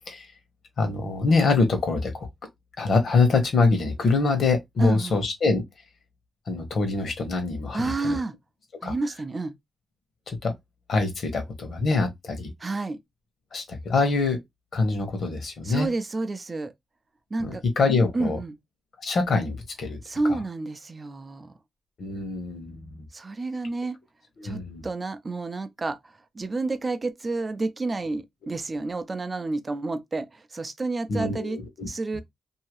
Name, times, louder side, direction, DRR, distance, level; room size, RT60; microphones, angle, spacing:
voice 1, 0.8-2.3 2.8-5.6 6.5-8.2 8.8-8.9 10.3-10.5 10.9-12.5 13.5-14.4 14.7-15.9 17.4-18.4 19.0-20.0 20.3-20.4 22.0-23.1 24.4-24.8 31.1-31.9, left 3 dB, 60° left, 1.1 m, -24 dB
voice 2, 4.8-5.2 7.7-8.3 8.8-9.5 12.6-13.0 15.6-16.7 17.3-17.6 18.1-18.6 20.0-21.5 23.1-24.0 24.4-31.6 31.9-32.2, right 3 dB, 30° right, 0.5 m, -30 dB
2.7 x 2.7 x 3.0 m
cardioid pair, 115°, 0 cm